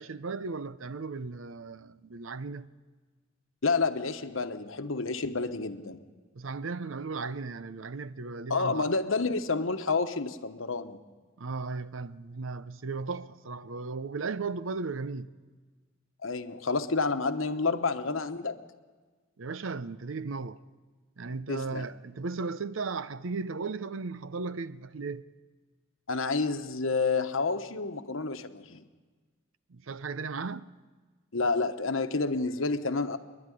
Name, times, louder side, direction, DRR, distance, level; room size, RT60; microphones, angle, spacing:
voice 1, 0.0-2.7 6.3-8.9 11.4-15.3 19.4-20.6 21.2-25.3 29.7-30.7, right 4 dB, 70° right, 0.7 m, -36 dB
voice 2, 3.6-6.0 8.5-11.0 16.2-18.6 21.5-21.9 26.1-28.8 31.3-33.2, left 4 dB, 70° left, 1.1 m, -29 dB
24.5 x 11.0 x 10.0 m
head